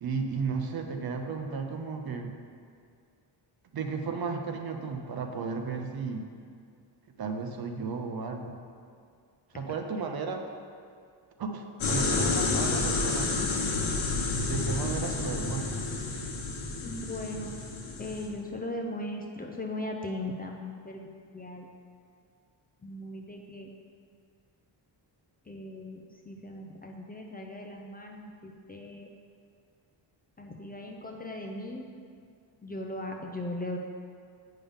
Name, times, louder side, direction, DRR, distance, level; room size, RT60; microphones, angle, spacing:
voice 1, 0.0-2.3 3.7-6.3 7.2-8.6 9.5-10.4 11.4-13.3 14.5-15.9, right 5 dB, 50° right, 4 dB, 0.7 m, -34 dB
sound 1, 11.8-18.3, left 3 dB, 85° left, 1.1 m, -30 dB
voice 2, 16.8-17.5 18.0-21.0 21.3-21.7 22.8-23.7 25.5-29.1 30.4-31.9 32.6-33.8, left 1 dB, 20° left, 1 dB, 0.5 m, -38 dB
8.4 x 5.5 x 3.6 m, 2.3 s
wide cardioid pair, 130°, 46 cm